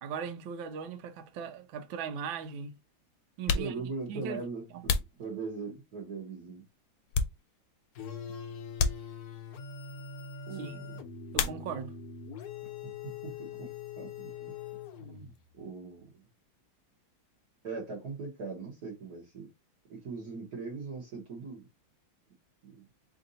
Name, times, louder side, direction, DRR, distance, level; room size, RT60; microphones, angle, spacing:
voice 1, 0.0-2.7 3.4-3.7 4.1-4.4 4.7-4.8 10.6-10.8 11.3-11.9, right 6 dB, 75° right, 1.4 m, -38 dB
sound 1, 1.6-1.7 2.6-2.7 3.3-5.9 6.5-7.9 8.1-8.3 8.7-9.6 11.3-12.1 12.4-13.1 13.3-15.5, left 5 dB, 85° left, 1.5 m, -35 dB
voice 2, 3.5-6.6 8.3-8.4 10.4-11.0 13.0-14.5 15.0-16.2 17.6-19.5 19.9-21.7 22.6-22.9, right 4 dB, 55° right, 1.4 m, -40 dB
sound 2, 7.9-15.4, left 6 dB, 60° left, 1.1 m, -43 dB
3.7 x 2.6 x 3.9 m
omnidirectional pair, 2.2 m